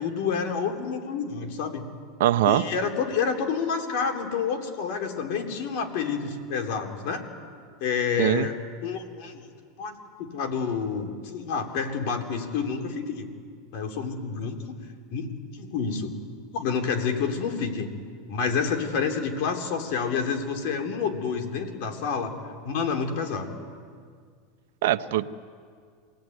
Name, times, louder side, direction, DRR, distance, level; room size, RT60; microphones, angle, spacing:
voice 1, 0.0-1.9 2.5-7.2 7.8-8.6 8.8-9.4 9.8-9.9 10.2-13.3 13.7-14.8 15.1-16.2 16.5-17.9 18.3-22.3 22.6-23.5, left 6 dB, 65° left, 4 dB, 3.8 m, -28 dB
voice 2, 2.2-2.6 8.2-8.5 24.8-25.3, right 13 dB, 75° right, 10 dB, 0.9 m, -22 dB
27.0 x 18.5 x 9.6 m, 2.1 s
supercardioid pair, 115°, 0 cm